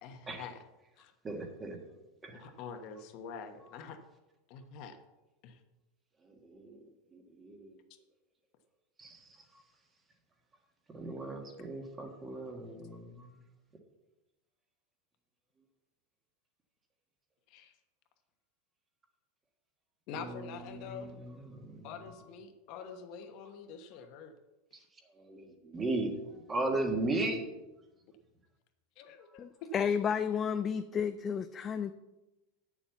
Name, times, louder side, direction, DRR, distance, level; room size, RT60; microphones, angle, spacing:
voice 1, 0.0-0.6 1.0-1.1 2.3-4.0 4.5-5.0 5.4-5.6 17.5-17.7 20.1-21.1 21.8-24.3 29.0-29.7, left 6 dB, 45° left, 7 dB, 1.1 m, -46 dB
voice 2, 1.2-1.8 2.2-2.4 6.3-6.8 7.1-7.8 9.0-9.2 10.9-13.3 20.1-21.9 25.2-26.2 26.5-27.4, right 2 dB, 15° right, 3 dB, 1.6 m, -37 dB
voice 3, 29.4-31.9, left 7 dB, 20° left, 10 dB, 0.4 m, -32 dB
8.7 x 7.1 x 7.0 m, 1.0 s
supercardioid pair, 155°, 0 cm